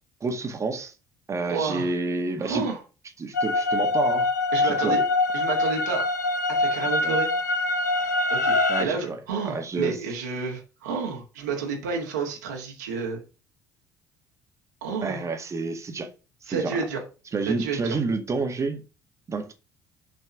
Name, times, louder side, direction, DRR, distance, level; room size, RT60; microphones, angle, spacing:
voice 1, 0.2-0.9 1.3-2.6 3.2-4.3 4.6-5.0 7.0-7.2 8.7-9.2 9.4-10.0 15.0-16.1 16.5-16.8 17.3-18.8 19.3-19.5, right 3 dB, 35° right, 1.8 m, -29 dB
voice 2, 1.4-1.9 2.4-2.8 4.5-5.0 5.3-6.1 6.6-7.3 8.3-13.2 14.8-15.3 16.5-17.0 17.5-18.0, right 5 dB, 75° right, 2.2 m, -30 dB
sound 1, 3.3-8.8, left 2 dB, 85° left, 0.6 m, -24 dB
7.7 x 4.5 x 6.0 m
figure-of-eight pair, 50°, 9 cm